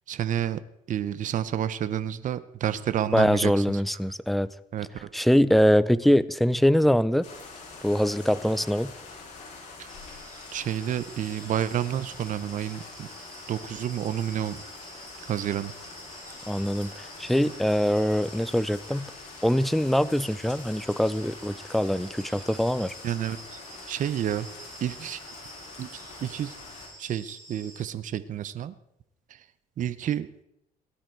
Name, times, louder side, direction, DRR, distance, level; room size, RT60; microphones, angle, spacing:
voice 1, 0.1-0.6 0.9-3.8 4.7-5.1 9.8-9.9 10.5-13.1 13.5-14.6 15.3-15.7 23.0-23.6 23.9-24.5 24.8-25.2 25.8-25.9 26.2-26.5 27.0-28.7 29.3-29.4 29.8-30.3, right 10 dB, 50° right, 14 dB, 0.7 m, -30 dB
voice 2, 3.1-4.5 5.1-7.3 7.8-8.9 16.5-19.1 19.4-22.9, equal, ahead, 16 dB, 0.5 m, -23 dB
sound 1, 7.2-26.9, left 4 dB, 45° left, 5.9 m, -45 dB
sound 2, 9.9-27.8, right 1 dB, 20° right, 7.6 m, -48 dB
18.5 x 12.0 x 4.6 m, 0.79 s
cardioid pair, 110°, 17 cm